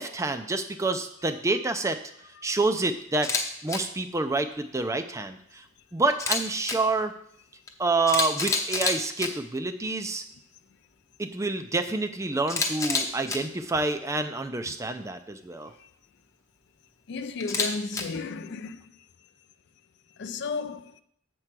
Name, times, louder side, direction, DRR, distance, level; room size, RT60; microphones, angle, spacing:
voice 1, 0.0-2.0 2.4-3.3 3.6-5.6 5.9-7.1 7.8-10.2 11.2-15.7, right 3 dB, 15° right, 0.4 m, -28 dB
Camera, 3.1-3.4 3.7-3.8 6.1-6.7 7.7-7.8 8.1-9.3 12.5-13.4 17.4-18.0, left 4 dB, 15° left, 0.7 m, -27 dB
voice 2, 17.1-18.9 20.2-21.0, left 4 dB, 55° left, 0.4 m, -33 dB
7.7 x 4.6 x 5.9 m
head